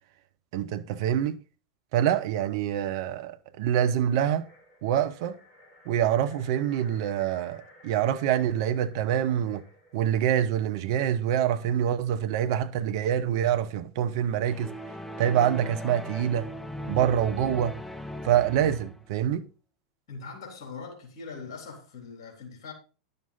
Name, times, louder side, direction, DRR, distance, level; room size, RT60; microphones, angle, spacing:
voice 1, 0.5-1.4 1.9-4.5 4.8-5.4 5.9-9.6 9.9-14.7 15.2-16.5 16.9-17.8 18.2-19.5, right 10 dB, 55° right, 1.0 m, -26 dB
sound 1, 3.9-10.3, equal, 20° left, 5.0 m, -55 dB
sound 2, 14.5-19.1, equal, 5° left, 0.7 m, -38 dB
voice 2, 20.1-22.7, left 4 dB, 55° left, 3.6 m, -41 dB
11.0 x 6.7 x 4.1 m
hypercardioid pair, 95°, 3 cm